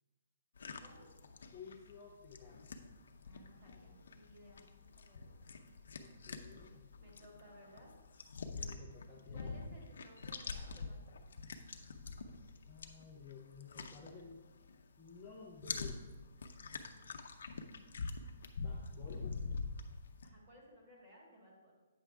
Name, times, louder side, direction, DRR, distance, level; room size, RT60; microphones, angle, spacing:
sound 1, 0.6-14.8 15.1-20.3, left 4 dB, 65° left, 0.7 m, -46 dB
voice 1, 0.8-1.1 3.2-5.5 7.0-7.9 9.3-11.3 20.2-21.7, equal, 20° right, -4 dB, 1.7 m, -60 dB
voice 2, 1.5-2.7 5.6-6.9 8.5-9.5 12.6-14.4 15.0-16.0 18.6-19.4, left 5 dB, 5° left, -8 dB, 0.6 m, -54 dB
9.0 x 6.1 x 3.4 m, 1.2 s
hypercardioid pair, 175°, 0 cm